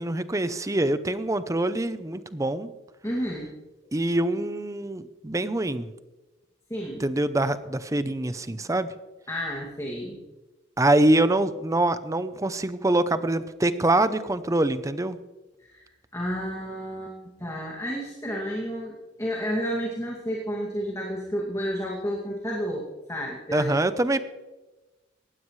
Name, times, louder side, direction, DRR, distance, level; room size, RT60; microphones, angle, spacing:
voice 1, 0.0-2.7 3.9-5.9 7.0-8.9 10.8-15.2 23.5-24.2, right 1 dB, 15° right, 12 dB, 0.6 m, -24 dB
voice 2, 3.0-3.5 6.7-7.1 9.3-10.2 15.7-15.8 16.1-23.8, equal, 15° left, -3 dB, 2.3 m, -31 dB
19.5 x 15.5 x 3.2 m, 1.1 s
head